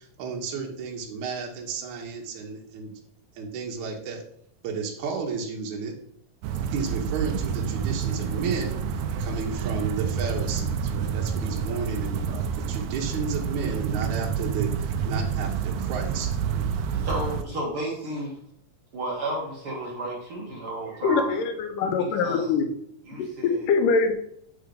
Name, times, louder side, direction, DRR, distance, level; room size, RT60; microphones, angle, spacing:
voice 1, 0.0-2.9 3.4-4.2 4.6-5.9 6.7-8.8 9.2-16.7, right 5 dB, 70° right, 0 dB, 2.2 m, -33 dB
sound 1, 6.4-17.4, right 7 dB, 90° right, 1.5 m, -28 dB
voice 2, 17.0-18.3 18.9-21.3 21.8-22.5 23.1-23.7, right 1 dB, 55° right, -3 dB, 1.7 m, -32 dB
voice 3, 21.0-22.7 23.2-24.1, left 5 dB, 80° left, 5 dB, 2.5 m, -23 dB
7.8 x 3.6 x 5.1 m, 0.68 s
omnidirectional pair, 3.8 m